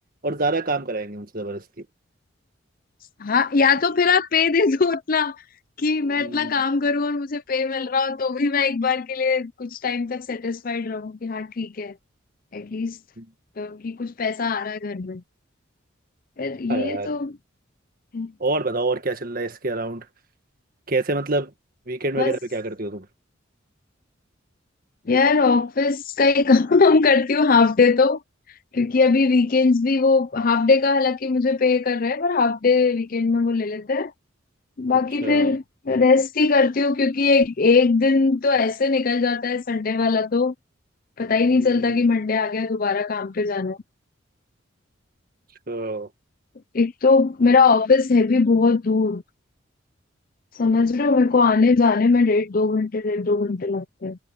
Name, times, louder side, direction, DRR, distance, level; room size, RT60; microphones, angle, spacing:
voice 1, 0.2-1.9 6.2-6.5 13.2-13.3 16.7-17.1 18.4-20.0 20.9-21.5 21.9-23.1 35.2-35.5 41.5-41.9 45.7-46.1, right 2 dB, 45° right, 1.7 m, -27 dB
voice 2, 3.2-5.4 5.8-11.9 12.5-13.0 13.6-15.2 16.4-17.3 18.1-18.3 22.2-22.4 25.1-28.2 28.7-34.1 34.8-40.5 41.2-43.8 46.7-49.2 50.5-54.2, left 4 dB, 45° left, 0.5 m, -20 dB
head